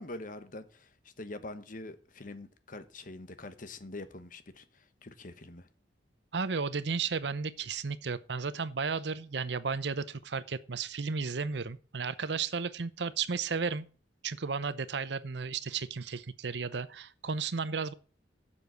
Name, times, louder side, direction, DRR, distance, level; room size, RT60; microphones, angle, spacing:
voice 1, 0.0-5.7, left 2 dB, 45° left, 1.1 m, -44 dB
voice 2, 6.3-13.8 14.2-17.9, right 5 dB, 65° right, 0.7 m, -34 dB
7.6 x 6.8 x 8.0 m
head